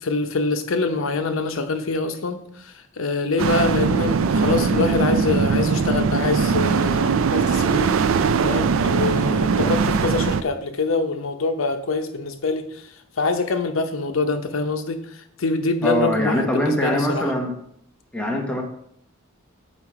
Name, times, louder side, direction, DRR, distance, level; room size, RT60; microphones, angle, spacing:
voice 1, 0.0-7.9 8.4-17.3, left 3 dB, 75° left, 7 dB, 0.7 m, -25 dB
sound 1, 3.4-10.4, right 5 dB, 75° right, 0.4 m, -20 dB
voice 2, 15.8-17.5 18.1-18.6, equal, 5° left, 1 dB, 0.9 m, -22 dB
7.2 x 4.4 x 4.8 m, 0.71 s
head